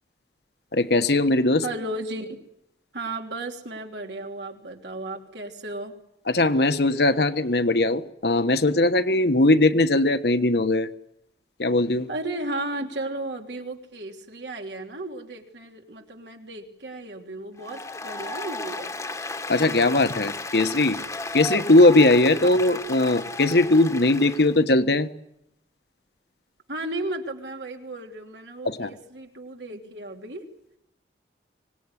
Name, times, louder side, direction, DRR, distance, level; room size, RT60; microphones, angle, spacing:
voice 1, 0.7-1.6 6.3-10.9 11.6-12.1 19.5-21.0 21.3-25.1 28.6-28.9, left 2 dB, 70° left, 10 dB, 1.3 m, -20 dB
voice 2, 1.6-2.4 2.9-6.0 12.1-19.0 26.7-30.5, right 2 dB, 85° right, 3 dB, 3.3 m, -34 dB
Applause, 17.6-24.6, left 2 dB, 15° left, 1.2 m, -34 dB
25.0 x 19.0 x 9.9 m, 0.80 s
head